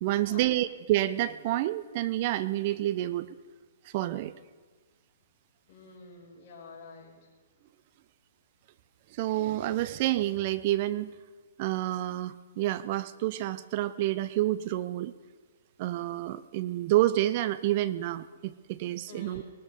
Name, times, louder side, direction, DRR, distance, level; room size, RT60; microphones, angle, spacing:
voice 1, 0.0-3.4 3.8-4.3 9.1-11.1 11.6-15.1 15.8-19.4, right 15 dB, 45° right, 15 dB, 0.6 m, -29 dB
voice 2, 5.7-7.3 19.1-19.5, left 3 dB, 40° left, -2 dB, 6.2 m, -48 dB
20.5 x 13.0 x 5.3 m, 1.4 s
hypercardioid pair, 140°, 0 cm